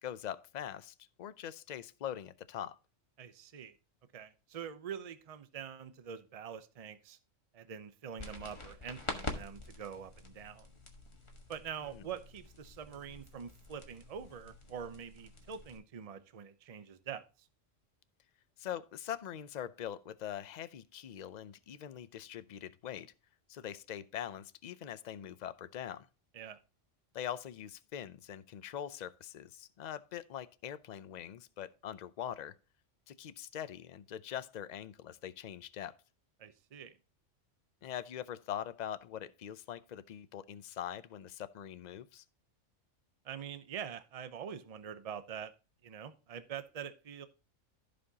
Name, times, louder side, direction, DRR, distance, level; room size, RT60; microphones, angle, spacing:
voice 1, 0.0-2.8 11.8-12.1 18.6-23.1 23.5-26.1 27.1-32.5 33.1-35.9 37.8-42.2, left 10 dB, 55° left, 0.5 m, -43 dB
voice 2, 3.2-3.7 4.1-7.2 7.5-10.7 11.5-17.5 26.3-26.6 36.4-36.9 43.2-45.5 45.8-47.3, right 8 dB, 35° right, 0.7 m, -45 dB
sound 1, 8.2-15.8, left 2 dB, 25° left, 1.4 m, -46 dB
15.0 x 5.2 x 2.8 m
omnidirectional pair, 1.3 m